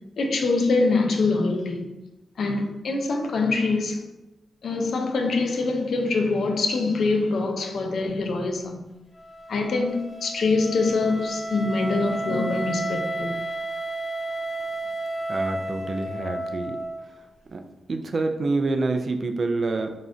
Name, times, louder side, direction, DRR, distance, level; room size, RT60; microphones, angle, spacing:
voice 1, 0.2-1.9 2.4-4.0 4.6-8.8 9.5-13.3, left 3 dB, 70° left, 0.4 m, -24 dB
Wind instrument woodwind instrument, 9.1-17.1, right 1 dB, 15° left, 1.0 m, -32 dB
voice 2, 15.3-16.8 17.5-17.6 17.9-19.9, right 3 dB, 50° right, 0.3 m, -27 dB
3.7 x 2.0 x 2.5 m
cardioid pair, 65°, 0 cm